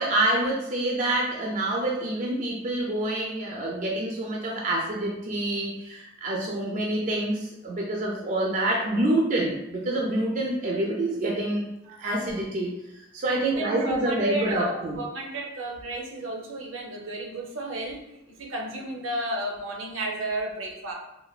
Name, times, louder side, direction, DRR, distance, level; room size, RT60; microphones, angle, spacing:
voice 1, 0.0-11.7 12.0-15.0, right 1 dB, 40° right, -2 dB, 0.3 m, -27 dB
voice 2, 13.3-18.0 18.4-20.9, right 1 dB, 90° right, 0 dB, 0.6 m, -33 dB
3.1 x 2.2 x 2.3 m, 0.89 s
head